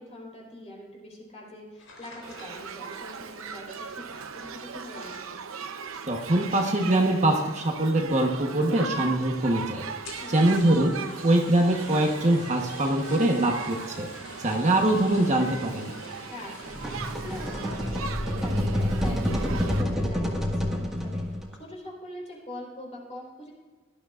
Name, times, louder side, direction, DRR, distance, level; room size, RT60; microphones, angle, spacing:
voice 1, 0.0-5.5 10.2-10.5 16.3-23.5, left 1 dB, 35° left, -3 dB, 4.2 m, -43 dB
sound 1, 1.8-7.9 8.2-8.7 9.0-9.1 9.3-9.4 9.9-18.2 18.7-19.0 19.5-19.8, left 2 dB, 90° left, 3.9 m, -48 dB
Shout / Human group actions, 2.2-19.8, right 5 dB, 80° right, 0.8 m, -38 dB
voice 2, 6.1-9.8 10.3-10.9 11.2-14.1 14.4-15.9, right 1 dB, 35° right, 2 dB, 1.1 m, -23 dB
sound 2, 16.7-21.5, equal, ahead, 1.7 m, -28 dB
18.0 x 12.0 x 2.5 m, 1.4 s
head